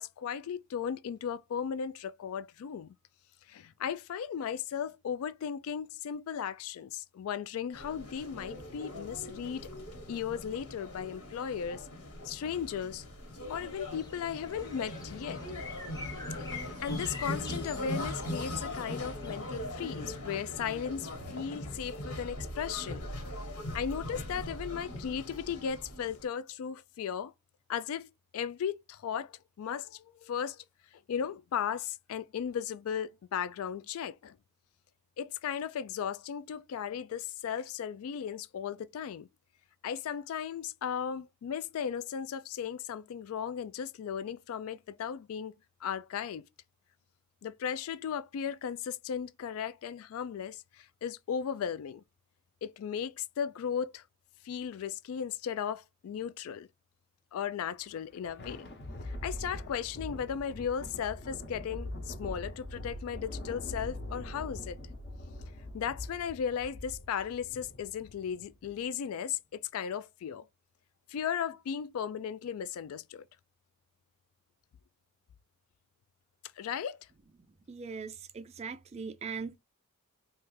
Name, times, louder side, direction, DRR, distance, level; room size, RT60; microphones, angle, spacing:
voice 1, 0.0-2.9 3.5-9.7 10.1-11.9 12.2-13.0 13.5-15.4 16.5-23.0 23.7-27.3 27.7-30.6 31.1-34.4 35.2-39.3 39.8-45.5 45.8-46.4 47.4-52.0 52.6-54.0 54.4-56.7 57.3-58.6 59.1-64.8 65.7-70.5 71.1-73.2 76.6-77.0, left 8 dB, 65° left, 0.3 m, -36 dB
sound 1, 7.7-26.2, left 1 dB, 90° left, 1.4 m, -40 dB
sound 2, 13.5-20.1, left 3 dB, 15° left, 0.6 m, -47 dB
Thunder, 57.8-68.6, left 1 dB, 50° left, 0.8 m, -43 dB
voice 2, 77.7-79.6, right 5 dB, 30° right, 0.3 m, -40 dB
3.2 x 2.4 x 3.2 m
head